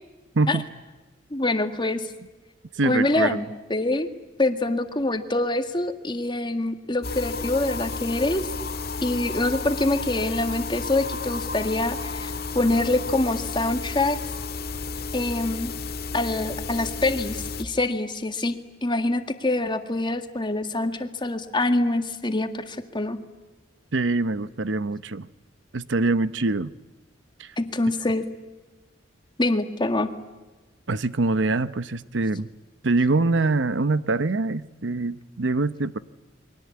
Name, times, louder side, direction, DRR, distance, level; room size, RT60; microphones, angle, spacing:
voice 1, 1.3-2.1 2.8-4.1 4.4-8.5 9.0-14.2 15.1-15.7 16.1-23.2 27.6-28.3 29.4-30.1, left 2 dB, 25° left, 1.8 m, -25 dB
voice 2, 2.8-3.4 23.9-25.3 25.7-26.7 27.4-27.5 30.9-32.5 32.8-36.0, right 3 dB, 70° right, 0.8 m, -24 dB
sound 1, 7.0-17.6, left 4 dB, 55° left, 1.7 m, -32 dB
29.5 x 23.0 x 8.6 m
head